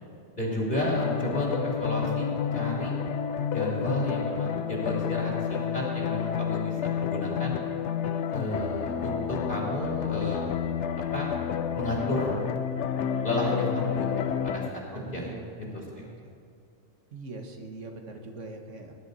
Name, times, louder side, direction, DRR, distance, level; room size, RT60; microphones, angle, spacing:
voice 1, 0.3-2.3 2.5-2.9 3.5-7.6 8.3-10.5 11.1-11.3 11.7-12.4 13.2-14.8 15.1-15.2 15.6-16.1, left 1 dB, 40° left, -4 dB, 3.2 m, -32 dB
sound 1, 0.8-14.7, left 8 dB, 70° left, 0.9 m, -30 dB
voice 2, 14.9-16.3 17.1-18.9, right 2 dB, 70° right, 3 dB, 1.7 m, -42 dB
19.5 x 11.0 x 4.1 m, 2.5 s
omnidirectional pair, 1.3 m